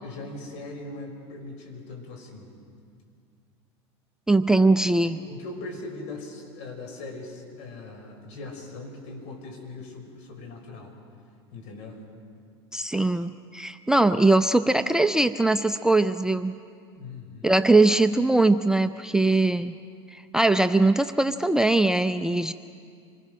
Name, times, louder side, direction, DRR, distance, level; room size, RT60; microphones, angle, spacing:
voice 1, 0.0-2.5 4.5-4.6 5.0-10.9 11.5-12.0 17.0-17.5, left 2 dB, 60° left, 3 dB, 4.7 m, -40 dB
voice 2, 4.3-5.2 12.7-16.6 17.4-19.8 20.1-22.5, right 2 dB, 5° right, 11 dB, 0.5 m, -21 dB
26.5 x 20.0 x 6.4 m, 2.3 s
hypercardioid pair, 95°, 14 cm